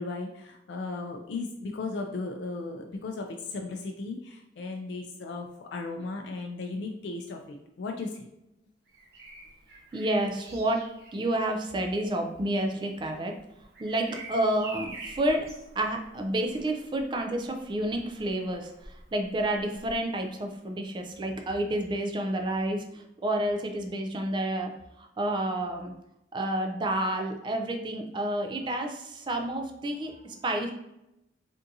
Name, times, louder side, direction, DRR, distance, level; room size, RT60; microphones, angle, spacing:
voice 1, 0.0-8.3, left 3 dB, 70° left, 2 dB, 0.4 m, -36 dB
Bird vocalization bird call bird song, 8.9-20.7 22.4-22.6, right 2 dB, 60° right, 0.8 m, -48 dB
voice 2, 9.9-10.8 11.1-13.3 13.8-15.5 15.8-18.7 19.1-24.7 25.0-25.9 26.3-30.7, right 1 dB, 25° right, 4 dB, 0.3 m, -29 dB
3.6 x 2.5 x 2.7 m, 0.86 s
head